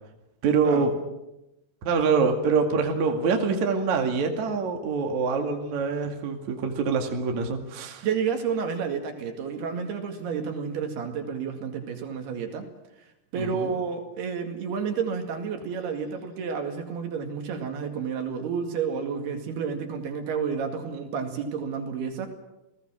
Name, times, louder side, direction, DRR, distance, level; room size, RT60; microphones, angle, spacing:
voice 1, 0.4-0.9 1.8-8.1 13.3-13.7, right 5 dB, 50° right, 3 dB, 3.2 m, -25 dB
voice 2, 8.0-12.7 13.3-22.3, right 6 dB, 70° right, 4 dB, 4.1 m, -30 dB
30.0 x 18.5 x 6.3 m, 0.92 s
omnidirectional pair, 4.8 m